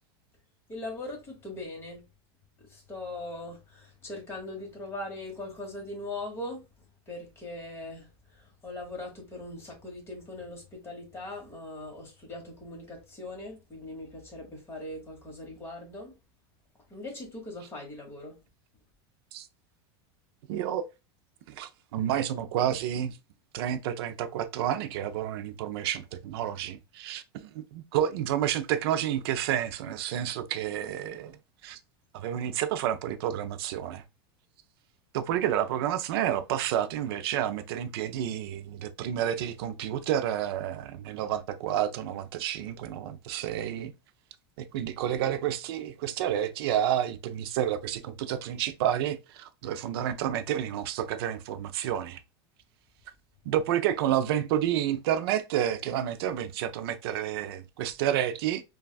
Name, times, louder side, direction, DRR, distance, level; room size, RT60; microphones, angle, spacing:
voice 1, 0.7-2.0 2.7-6.6 7.1-16.1 16.9-18.4, left 2 dB, 20° left, 1.2 m, -40 dB
voice 2, 20.5-20.8 21.5-23.2 23.5-31.4 31.6-31.8 32.1-34.0 35.1-43.9 44.6-52.2 53.5-58.6, right 10 dB, 70° right, 0.4 m, -30 dB
3.3 x 2.3 x 2.2 m
supercardioid pair, 135°, 13 cm